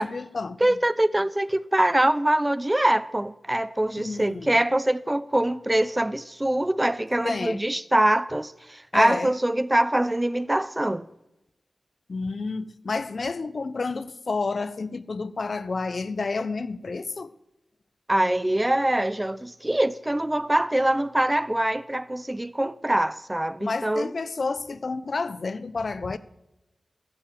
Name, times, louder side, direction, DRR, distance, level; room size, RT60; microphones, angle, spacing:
voice 1, 0.0-0.8 4.0-4.6 7.2-7.6 8.9-9.3 12.1-17.3 23.6-26.2, left 3 dB, 55° left, 0.7 m, -30 dB
voice 2, 0.6-11.1 18.1-24.1, right 1 dB, 15° right, 0.6 m, -24 dB
13.5 x 11.5 x 7.6 m
wide cardioid pair, 90°, 0 cm